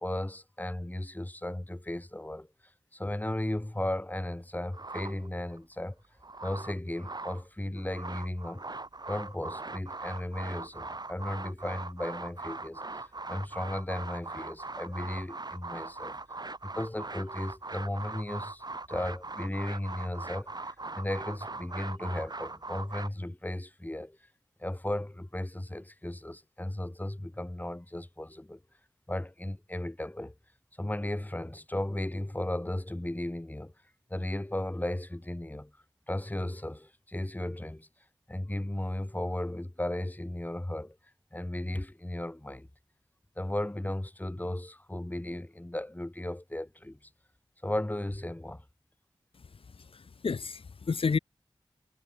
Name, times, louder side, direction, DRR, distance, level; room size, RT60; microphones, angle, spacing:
voice 1, 0.0-2.5 2.9-6.0 6.4-8.6 9.1-16.2 16.6-24.2 24.6-28.6 29.1-30.3 30.8-33.7 34.1-35.7 36.1-37.9 38.3-41.0 41.3-42.7 43.4-47.0 47.6-48.6, left 1 dB, 20° left, 5.2 m, -35 dB
sound 1, 4.7-5.6 6.0-7.4 7.8-23.1, right 3 dB, 50° right, 3.3 m, -40 dB
voice 2, 49.8-51.2, left 5 dB, 80° left, 2.3 m, -31 dB
cardioid pair, 45°, 9 cm